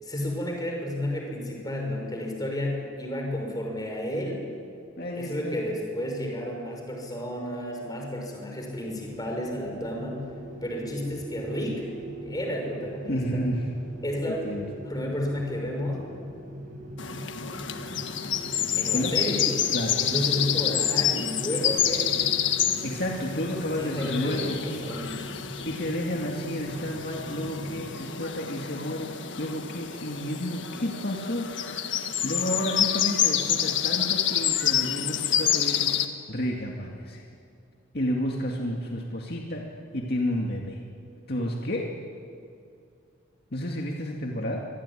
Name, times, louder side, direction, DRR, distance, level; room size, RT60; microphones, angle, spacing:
voice 1, 0.0-4.5 5.2-10.3 10.6-11.8 12.2-13.4 14.0-14.4 14.8-16.0 17.8-18.0 18.7-19.5 19.9-22.1 23.8-25.4, left 1 dB, 20° left, 1 dB, 5.9 m, -32 dB
voice 2, 5.0-5.6 13.1-13.7 14.3-14.7 18.9-19.2 19.7-20.0 22.8-24.9 25.7-31.5 31.9-37.2 37.9-40.8 41.3-42.0 43.5-44.6, equal, 55° left, 0 dB, 2.2 m, -31 dB
sound 1, 8.9-27.9, right 1 dB, 40° right, 6.2 m, -41 dB
sound 2, 17.0-36.1, left 10 dB, 70° left, 1.6 m, -28 dB
25.0 x 22.0 x 10.0 m, 2.4 s
head